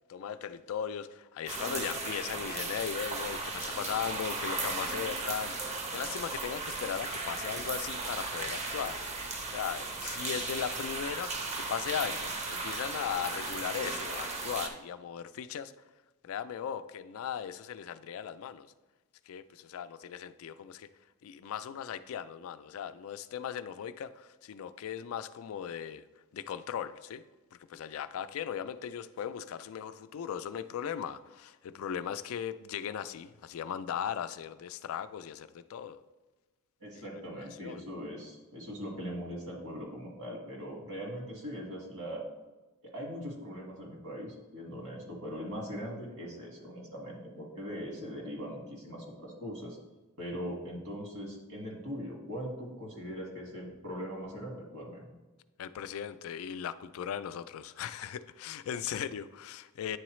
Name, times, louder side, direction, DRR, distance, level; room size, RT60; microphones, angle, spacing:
voice 1, 0.1-9.0 9.5-11.3 11.6-15.7 16.2-18.7 19.3-20.9 21.2-26.1 26.3-27.2 27.7-36.0 36.9-37.0 37.3-37.8 55.6-60.0, left 8 dB, 65° left, 13 dB, 0.3 m, -38 dB
sound 1, 1.5-14.7, right 3 dB, 30° right, 0.6 m, -36 dB
voice 2, 36.8-42.2 42.8-49.8 50.2-55.1, equal, 70° right, -1 dB, 1.8 m, -41 dB
9.3 x 3.8 x 3.1 m, 1.2 s
head